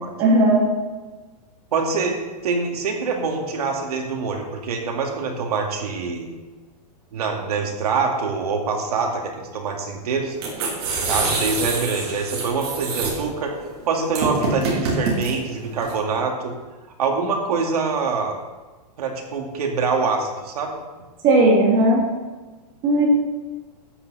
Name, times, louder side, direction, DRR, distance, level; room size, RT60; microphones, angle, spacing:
voice 1, 0.2-0.6 21.2-22.0 22.8-23.1, right 2 dB, 20° right, -2 dB, 2.1 m, -16 dB
voice 2, 1.7-6.3 7.1-10.4 11.1-13.6 13.9-16.5 17.0-18.3 19.0-20.8, right 4 dB, 65° right, 1 dB, 2.3 m, -25 dB
sound 1, 10.3-15.9, right 3 dB, 40° right, 3.0 m, -26 dB
13.0 x 8.5 x 4.1 m, 1.3 s
supercardioid pair, 180°, 21 cm